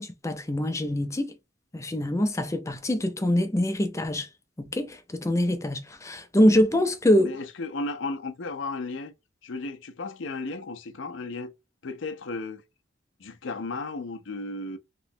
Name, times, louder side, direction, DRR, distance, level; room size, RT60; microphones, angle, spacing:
voice 1, 0.0-1.3 1.7-4.3 4.6-7.3, left 1 dB, 15° left, 0.5 m, -24 dB
voice 2, 7.2-9.1 9.4-11.5 11.8-12.6 13.2-14.8, left 3 dB, 75° left, 0.5 m, -34 dB
3.1 x 3.0 x 2.6 m
head